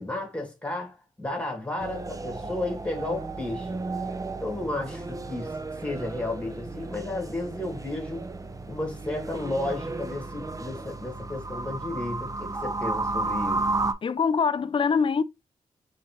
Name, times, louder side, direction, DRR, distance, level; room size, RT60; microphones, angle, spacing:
voice 1, 0.0-3.8 4.4-8.3 8.7-13.6, left 2 dB, 10° left, 2.1 m, -33 dB
sound 1, 1.8-13.9, right 3 dB, 25° right, 0.6 m, -33 dB
voice 2, 14.0-15.2, left 5 dB, 40° left, 0.4 m, -23 dB
3.9 x 3.7 x 2.9 m
cardioid pair, 55°, 13 cm